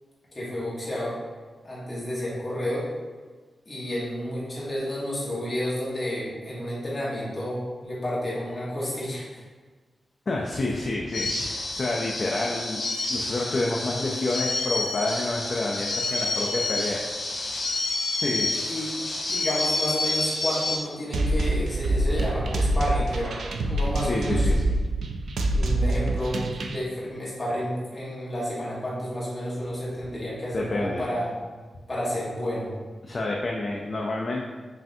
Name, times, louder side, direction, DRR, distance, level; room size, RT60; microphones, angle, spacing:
voice 1, 0.3-1.2 1.6-2.9 3.7-9.4 18.7-18.9 19.3-23.4 23.7-24.5 25.4-31.3 31.9-32.7, equal, 20° left, -8 dB, 1.3 m, -30 dB
voice 2, 10.3-12.8 13.1-17.0 17.7-17.8 18.2-18.5 24.1-24.7 30.5-31.0 33.0-34.4, left 2 dB, 35° left, -2 dB, 0.4 m, -28 dB
sound 1, 11.1-20.8, left 2 dB, 85° left, 1.1 m, -29 dB
sound 2, 21.1-26.8, right 1 dB, 90° right, 0.3 m, -25 dB
5.4 x 2.6 x 2.6 m, 1.4 s
wide cardioid pair, 155°, 0 cm